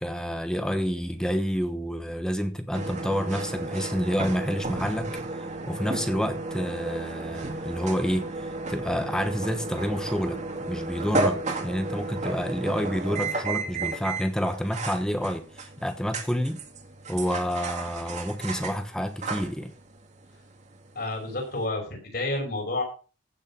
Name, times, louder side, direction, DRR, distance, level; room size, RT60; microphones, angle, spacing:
voice 1, 0.0-5.1 5.7-8.3 8.7-16.6 17.1-19.7, equal, 5° left, 1.1 m, -29 dB
sound 1, 2.7-21.6, right 2 dB, 35° right, 2.0 m, -33 dB
voice 2, 20.9-22.8, left 2 dB, 50° left, 5.7 m, -30 dB
15.5 x 6.5 x 6.1 m
head